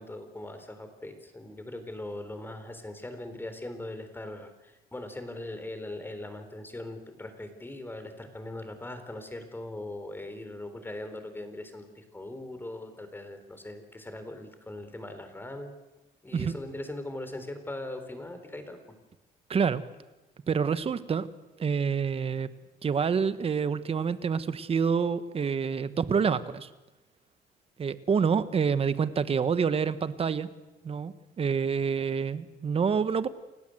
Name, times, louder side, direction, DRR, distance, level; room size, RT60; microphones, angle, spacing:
voice 1, 0.0-15.7 16.2-18.8, left 1 dB, 10° left, 9 dB, 4.0 m, -40 dB
voice 2, 19.5-19.8 20.5-21.3 21.6-22.5 22.8-26.7 27.8-30.5 30.8-33.3, right 6 dB, 35° right, 13 dB, 1.4 m, -27 dB
29.0 x 17.0 x 8.0 m, 1.1 s
cardioid pair, 110°, 17 cm